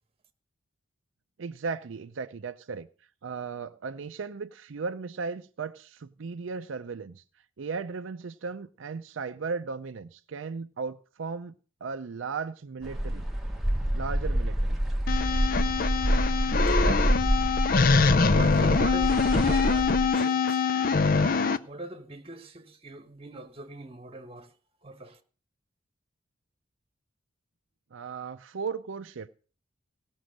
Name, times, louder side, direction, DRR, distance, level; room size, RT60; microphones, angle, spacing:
voice 1, 1.4-2.9 3.2-7.2 7.6-13.3 13.9-14.8 16.8-17.3 27.9-29.3, right 5 dB, 75° right, 0.5 m, -36 dB
sound 1, 12.8-20.1, equal, ahead, 1.3 m, -27 dB
sound 2, 15.1-21.6, left 4 dB, 45° left, 0.5 m, -24 dB
voice 2, 18.3-20.7 21.2-24.5 24.8-25.2, right 2 dB, 30° right, 1.3 m, -41 dB
17.0 x 6.2 x 6.4 m
head